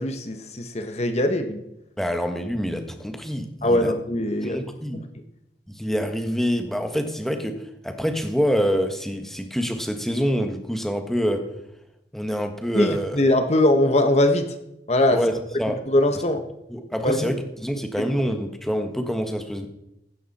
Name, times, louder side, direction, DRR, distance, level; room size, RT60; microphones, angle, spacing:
voice 1, 0.0-1.6 3.6-4.6 12.7-14.5 14.9-15.2 15.9-16.4 17.0-17.3, left 1 dB, 40° left, 7 dB, 1.1 m, -21 dB
voice 2, 2.0-3.9 4.4-5.0 5.7-11.5 12.1-13.2 15.1-15.8 16.7-19.7, equal, ahead, 5 dB, 1.4 m, -26 dB
16.0 x 12.0 x 4.3 m, 0.84 s
head